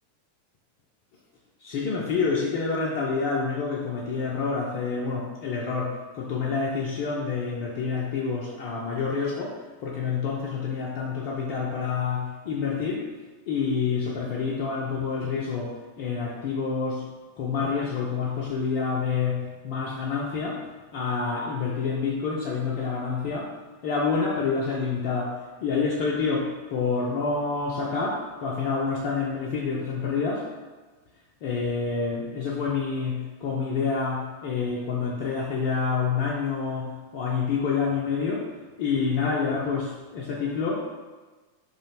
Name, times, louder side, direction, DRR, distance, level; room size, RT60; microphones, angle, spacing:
voice 1, 1.6-13.1 13.5-17.1 17.4-23.5 23.8-30.5 31.4-38.5 38.8-40.9, left 5 dB, 45° left, -4 dB, 0.3 m, -28 dB
2.4 x 2.0 x 2.9 m, 1.3 s
figure-of-eight pair, 90°, 0 cm